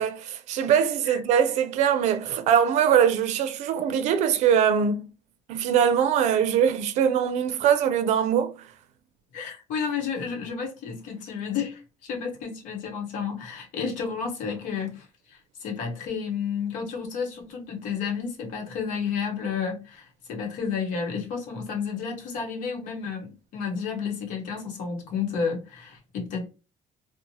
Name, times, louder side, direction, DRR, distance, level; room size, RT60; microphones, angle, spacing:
voice 1, 0.0-5.1 5.5-8.5, right 8 dB, 65° right, 0.4 m, -22 dB
voice 2, 9.3-26.5, left 6 dB, 90° left, 0.9 m, -31 dB
2.8 x 2.1 x 2.6 m
cardioid pair, 175°, 13 cm